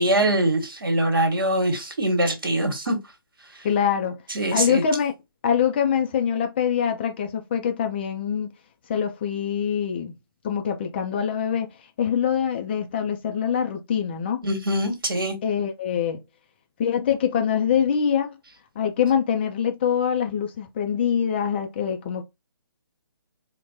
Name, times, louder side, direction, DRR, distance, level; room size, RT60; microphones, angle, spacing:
voice 1, 0.0-3.0 4.3-4.8 14.4-15.4, right 1 dB, 65° right, 1.3 m, -23 dB
voice 2, 3.6-4.2 4.5-5.1 5.4-8.5 8.9-10.1 10.4-11.7 12.0-14.4 15.4-16.2 16.8-18.4 18.8-22.2, left 8 dB, 25° left, 0.4 m, -24 dB
4.2 x 2.1 x 2.6 m
figure-of-eight pair, 135°, 13 cm